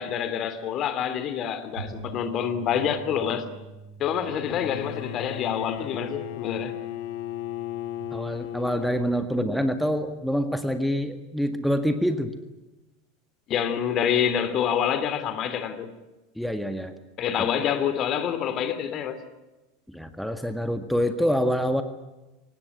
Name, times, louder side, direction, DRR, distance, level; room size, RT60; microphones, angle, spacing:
voice 1, 0.0-3.5 4.0-6.8 13.5-15.9 17.2-19.2, left 8 dB, 40° left, 2.9 m, -27 dB
sound 1, 1.8-8.0, right 4 dB, 80° right, 7.9 m, -45 dB
Bowed string instrument, 4.2-9.5, left 13 dB, 60° left, 1.7 m, -36 dB
voice 2, 8.1-12.3 16.4-16.9 17.4-17.5 19.9-21.8, equal, ahead, 1.8 m, -26 dB
24.5 x 19.5 x 9.5 m
figure-of-eight pair, 80°, 0 cm